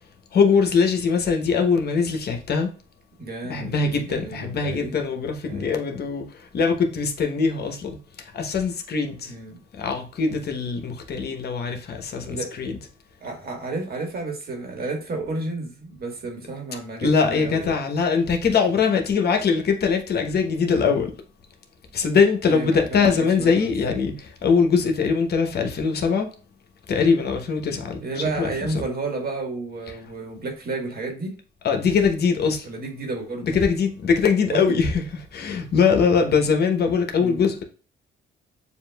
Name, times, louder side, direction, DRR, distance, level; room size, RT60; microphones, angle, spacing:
voice 1, 0.3-2.7 3.5-8.0 8.3-9.3 9.8-12.8 17.0-21.1 21.9-26.3 26.9-28.0 28.4-28.8 31.6-32.7 33.4-34.9 35.3-37.6, left 5 dB, 55° left, 0.9 m, -22 dB
voice 2, 3.2-3.8 4.1-5.0 5.4-5.9 9.3-9.6 12.3-12.6 13.2-17.8 20.7-21.0 22.5-23.7 28.0-31.4 32.6-33.5 34.5-34.8 37.2-37.4, right 3 dB, 50° right, 1.5 m, -32 dB
6.9 x 2.5 x 2.2 m
cardioid pair, 90°, 20 cm